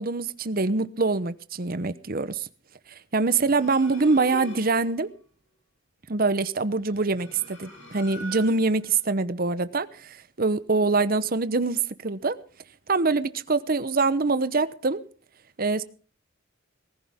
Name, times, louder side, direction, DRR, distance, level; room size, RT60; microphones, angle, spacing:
voice 1, 0.0-2.5 2.9-5.1 6.1-12.4 12.9-15.0 15.6-15.8, right 3 dB, 50° right, 0.9 m, -24 dB
sound 1, 3.3-4.9 6.8-8.9, equal, 85° left, 6.1 m, -43 dB
20.0 x 14.5 x 3.6 m
head